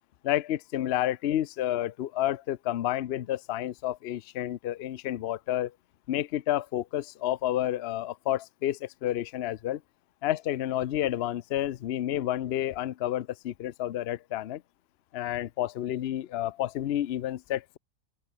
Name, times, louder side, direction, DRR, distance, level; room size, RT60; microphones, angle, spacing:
voice 1, 0.2-5.7 6.1-9.8 10.2-14.6 15.1-17.8, left 12 dB, 80° left, 0.5 m, -30 dB
open air
omnidirectional pair, 1.8 m